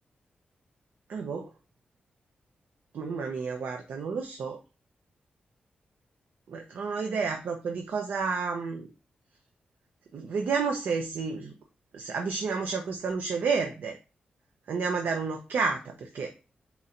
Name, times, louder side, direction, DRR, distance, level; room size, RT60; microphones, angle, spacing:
voice 1, 1.1-1.5 2.9-4.6 6.5-8.9 10.1-11.5 11.9-14.0 14.7-16.3, right 5 dB, 80° right, 4 dB, 0.6 m, -30 dB
4.1 x 2.5 x 4.2 m, 0.32 s
wide cardioid pair, 150°, 3 cm